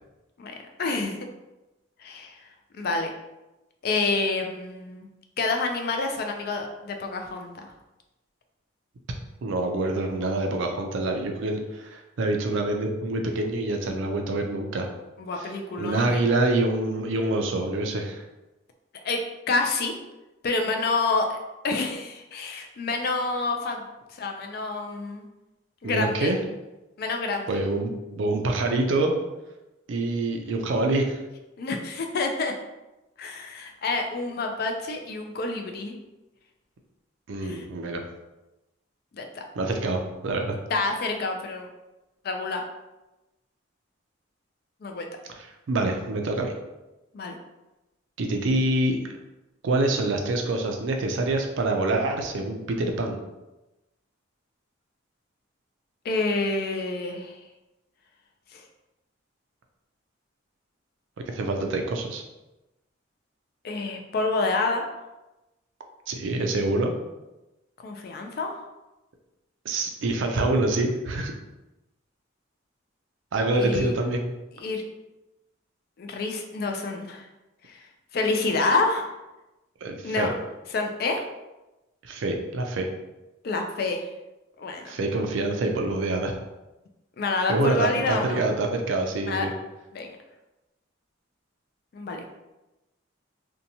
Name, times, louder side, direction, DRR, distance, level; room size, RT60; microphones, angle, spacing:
voice 1, 0.4-1.3 2.0-2.4 2.8-3.1 3.8-5.1 5.4-7.7 15.2-16.3 19.0-19.9 20.4-21.4 21.6-23.8 24.1-25.3 25.8-26.3 27.0-27.5 31.6-32.5 33.2-36.0 37.4-37.7 39.1-39.4 40.7-41.7 42.2-42.6 44.8-45.1 47.1-47.4 56.0-57.4 58.5-58.6 63.6-64.9 67.8-68.5 73.6-73.9 74.6-74.8 76.0-77.3 77.6-77.8 78.1-79.1 80.0-80.3 80.7-81.2 83.4-84.1 84.6-84.9 87.2-88.4 89.3-89.5 89.9-90.1 91.9-92.3, left 3 dB, 50° left, 4 dB, 0.3 m, -28 dB
voice 2, 9.4-14.9 15.4-15.5 15.8-18.2 25.8-26.4 27.5-29.1 29.9-31.2 37.3-38.0 39.6-40.6 45.3-46.5 48.2-49.0 49.6-53.2 61.3-62.2 66.1-66.9 69.6-71.3 73.3-74.2 79.8-80.3 82.0-82.9 84.9-86.3 87.5-89.5, right 2 dB, 70° right, 3 dB, 0.4 m, -26 dB
2.7 x 2.1 x 2.7 m, 1.0 s
head